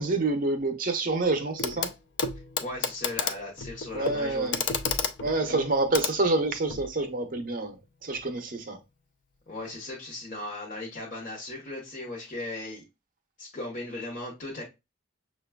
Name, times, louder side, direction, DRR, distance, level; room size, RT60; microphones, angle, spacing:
voice 1, 0.0-1.9 3.9-4.6 5.2-7.8 8.0-8.8, right 2 dB, 45° right, 0.5 m, -27 dB
Clock, 1.6-1.9 2.2-6.9 8.1-8.2, left 6 dB, 65° left, 0.4 m, -32 dB
voice 2, 2.6-4.5 9.5-12.8 13.4-14.6, left 2 dB, 40° left, 0.9 m, -37 dB
6.3 x 2.2 x 2.2 m
head